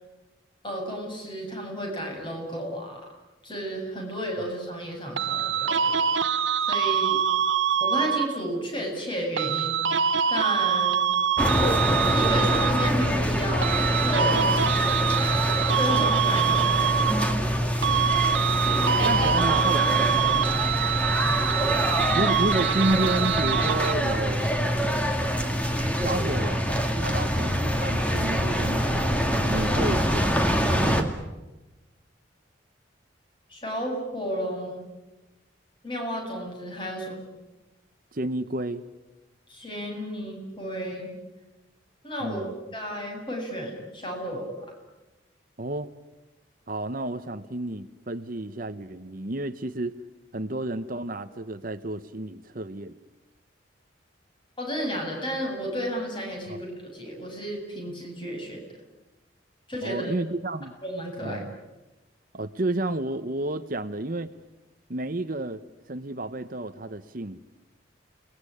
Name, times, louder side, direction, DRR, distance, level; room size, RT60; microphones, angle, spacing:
voice 1, 0.6-3.0 3.4-6.0 6.6-7.2 7.8-9.8 10.3-11.0 12.0-17.4 33.5-34.8 35.8-37.2 39.5-41.1 42.0-42.5 42.7-44.7 54.6-58.6 59.7-60.1 60.8-61.4, equal, 25° left, 1 dB, 7.7 m, -32 dB
sound 1, 5.2-8.5 9.4-13.2 13.6-17.5 17.8-24.2, right 7 dB, 75° right, 0.9 m, -25 dB
sound 2, 11.4-31.0, equal, 5° left, 2.3 m, -25 dB
voice 2, 19.0-20.2 22.1-24.5 26.0-29.1 29.4-31.2 38.1-38.8 42.2-42.5 45.6-45.9 46.7-49.9 50.3-52.9 56.5-56.6 59.8-60.7 61.2-61.6 62.3-64.3 64.9-65.6 65.9-67.4, right 1 dB, 45° right, 11 dB, 1.0 m, -31 dB
29.5 x 20.0 x 10.0 m, 1.1 s
head